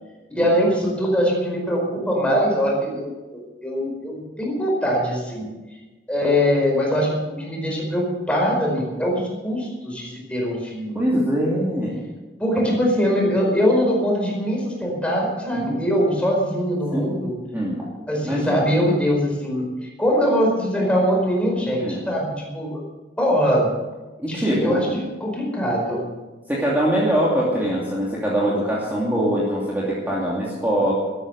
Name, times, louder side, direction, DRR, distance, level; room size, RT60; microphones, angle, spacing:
voice 1, 0.3-5.5 6.1-11.1 12.4-17.3 18.1-22.8 23.2-23.7 24.3-26.1, equal, 5° left, -1 dB, 4.9 m, -22 dB
voice 2, 10.9-11.9 15.5-15.9 16.9-17.1 17.5-17.9 18.2-18.7 21.8-22.0 24.2-24.9 26.5-30.9, equal, 10° right, -6 dB, 2.7 m, -23 dB
13.5 x 13.0 x 6.6 m, 1.2 s
head